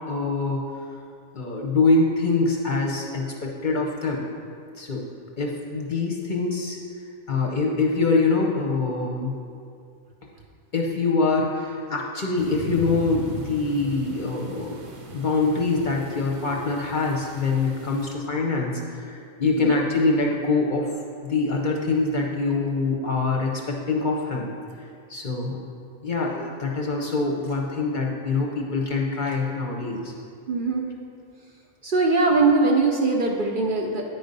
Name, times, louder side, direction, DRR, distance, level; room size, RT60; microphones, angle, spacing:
voice 1, 0.1-0.6 1.3-4.3 4.7-5.1 5.4-6.8 7.3-9.4 10.7-14.8 15.1-20.9 21.2-24.5 24.8-25.7 26.0-30.1, left 3 dB, 50° left, -1 dB, 0.7 m, -24 dB
sound 1, 12.4-18.1, right 2 dB, 75° right, 1.2 m, -38 dB
voice 2, 30.5-30.9 31.8-34.0, right 3 dB, 55° right, 0 dB, 0.7 m, -21 dB
9.2 x 3.9 x 5.2 m, 2.4 s
omnidirectional pair, 1.3 m